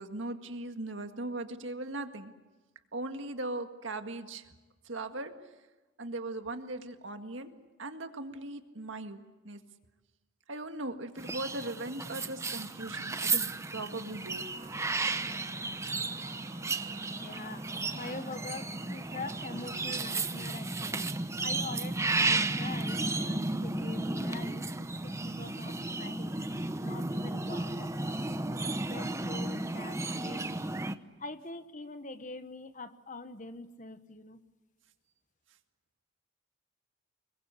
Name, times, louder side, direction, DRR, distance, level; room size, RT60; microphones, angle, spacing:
voice 1, 0.0-2.3 2.9-4.5 4.9-5.3 6.0-9.6 10.5-14.4, right 2 dB, 70° right, 7 dB, 1.9 m, -39 dB
sound 1, 11.2-30.9, right 3 dB, 15° right, 0.8 m, -34 dB
sound 2, 14.6-20.0, right 3 dB, 35° right, 2.2 m, -53 dB
voice 2, 17.2-17.6 17.9-21.1 21.4-26.4 26.8-28.5 28.9-30.6 31.2-34.4, left 3 dB, 40° left, 11 dB, 1.2 m, -44 dB
26.0 x 22.0 x 8.3 m, 1.2 s
head